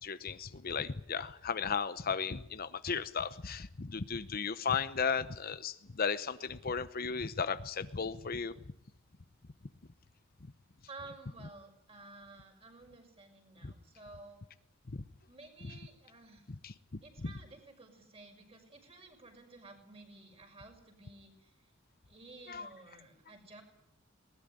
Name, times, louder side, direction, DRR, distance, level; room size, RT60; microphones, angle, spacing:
voice 1, 0.0-8.5 13.6-13.7 16.6-16.7 22.5-22.7, left 6 dB, 45° left, 13 dB, 0.9 m, -35 dB
voice 2, 10.9-14.4 15.3-16.5 17.0-21.7 22.1-23.6, right 3 dB, 30° right, 3 dB, 6.2 m, -53 dB
21.0 x 20.0 x 9.9 m, 0.76 s
head